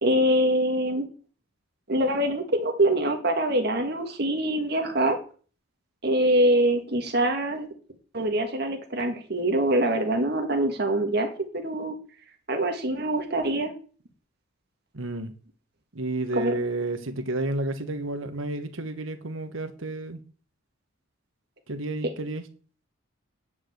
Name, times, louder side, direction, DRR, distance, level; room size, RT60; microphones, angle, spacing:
voice 1, 0.0-1.0 1.9-5.2 6.0-7.7 8.1-11.9 12.5-13.7 16.3-16.5, right 1 dB, 50° right, 1.7 m, -24 dB
voice 2, 14.9-15.3 15.9-20.2 21.7-22.4, right 2 dB, 70° right, 1.3 m, -31 dB
9.4 x 4.9 x 7.9 m
head